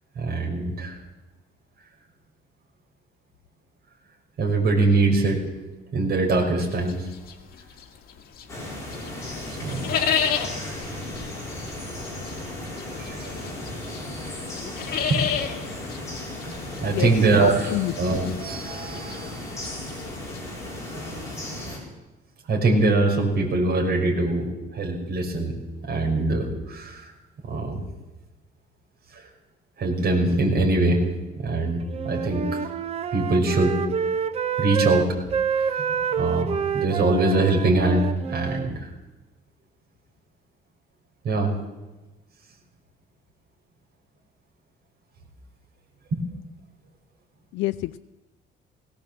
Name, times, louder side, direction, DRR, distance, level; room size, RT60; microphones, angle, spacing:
voice 1, 0.1-1.0 4.4-5.4 5.9-7.1 9.5-9.9 13.0-13.4 14.2-14.3 14.8-15.3 16.5-19.7 22.4-27.1 27.4-27.8 29.1-29.3 29.8-31.1 31.4-32.6 33.1-33.8 34.6-35.2 35.4-38.9 41.2-41.5 46.1-46.2, right 2 dB, 50° right, 0 dB, 5.7 m, -23 dB
sound 1, 6.6-8.6 8.9-20.4, left 7 dB, 50° left, 2.1 m, -31 dB
sound 2, 8.5-21.8, left 1 dB, 15° left, 6.4 m, -35 dB
voice 2, 17.4-17.9 47.5-48.0, left 17 dB, 75° left, 9 dB, 0.6 m, -27 dB
Wind instrument woodwind instrument, 31.9-38.7, right 7 dB, 30° right, 0.7 m, -27 dB
20.0 x 17.0 x 7.7 m, 1.1 s
cardioid pair, 175°, 20 cm